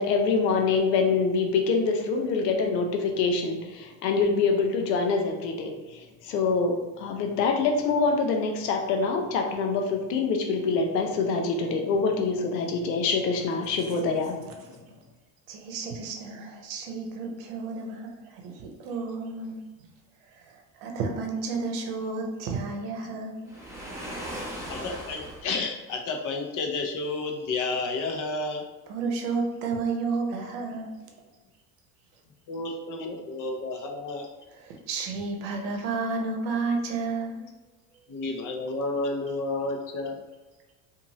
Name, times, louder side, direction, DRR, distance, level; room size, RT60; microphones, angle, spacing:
voice 1, 0.0-14.4, left 4 dB, 90° left, 2 dB, 0.6 m, -25 dB
voice 2, 15.5-19.6 20.3-23.5 28.9-30.9 34.5-37.5, right 4 dB, 65° right, 2 dB, 0.8 m, -31 dB
Waves surf, 23.5-25.6, equal, 5° right, 0.7 m, -37 dB
voice 3, 24.7-28.6 32.5-34.3 38.1-40.2, left 3 dB, 40° left, 2 dB, 0.7 m, -31 dB
2.6 x 2.5 x 2.9 m, 1.2 s
hypercardioid pair, 80°, 48 cm